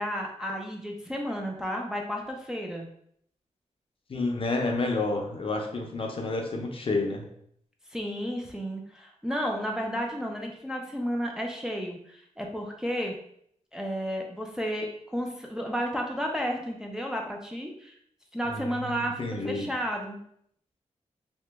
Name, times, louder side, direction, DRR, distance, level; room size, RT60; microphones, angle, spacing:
voice 1, 0.0-2.9 7.9-13.1 13.7-17.9 18.3-20.2, equal, 5° right, 0 dB, 0.4 m, -32 dB
voice 2, 4.1-7.3 18.5-19.7, left 3 dB, 45° left, 2 dB, 0.5 m, -30 dB
2.9 x 2.1 x 3.3 m, 0.68 s
wide cardioid pair, 115°, 13 cm